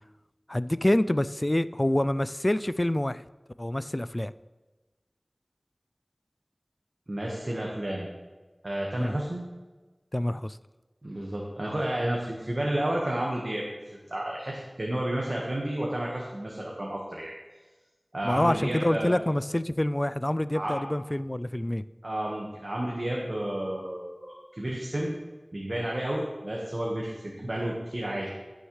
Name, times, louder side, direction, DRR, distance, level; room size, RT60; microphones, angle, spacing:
voice 1, 0.5-3.2 3.6-4.3 9.0-9.2 10.1-10.6 18.2-21.8, left 1 dB, 30° left, 15 dB, 0.3 m, -26 dB
voice 2, 7.1-8.1 8.6-9.4 11.0-13.6 14.1-17.3 18.1-19.1 20.5-20.8 22.0-25.1 25.5-28.3, right 1 dB, 55° right, -2 dB, 1.4 m, -31 dB
16.0 x 6.4 x 3.3 m, 1.2 s
wide cardioid pair, 45°, 0 cm